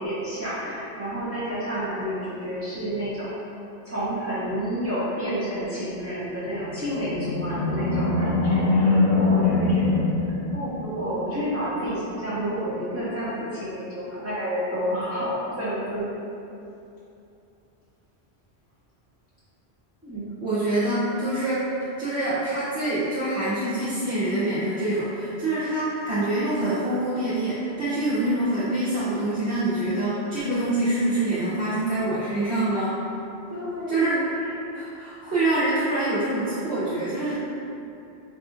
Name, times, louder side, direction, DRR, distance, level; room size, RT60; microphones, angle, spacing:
voice 1, 0.0-3.3 3.8-16.0 20.0-20.3 33.5-34.5, equal, 20° right, -11 dB, 0.4 m, -30 dB
Animal, 6.6-11.1, left 3 dB, 60° left, 0.7 m, -23 dB
voice 2, 20.4-21.6 22.0-33.0 33.9-34.2 34.7-37.3, right 1 dB, 80° right, -13 dB, 1.1 m, -25 dB
4.7 x 2.4 x 2.5 m, 2.7 s
omnidirectional pair, 1.1 m